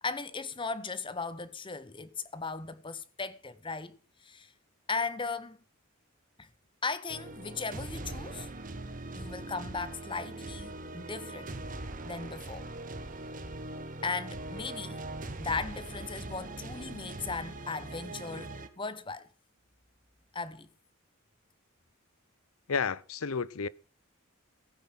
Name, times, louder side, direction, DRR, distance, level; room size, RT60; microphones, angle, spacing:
voice 1, 0.0-4.5 4.9-5.6 6.4-6.5 6.8-8.5 9.1-11.5 12.0-12.6 14.0-15.0 15.4-19.3 20.3-20.7, left 4 dB, 25° left, 1.0 m, -37 dB
sound 1, 7.1-18.7, right 2 dB, 40° right, 1.4 m, -41 dB
voice 2, 22.7-23.7, left 5 dB, 85° left, 0.7 m, -31 dB
16.0 x 9.6 x 6.1 m
head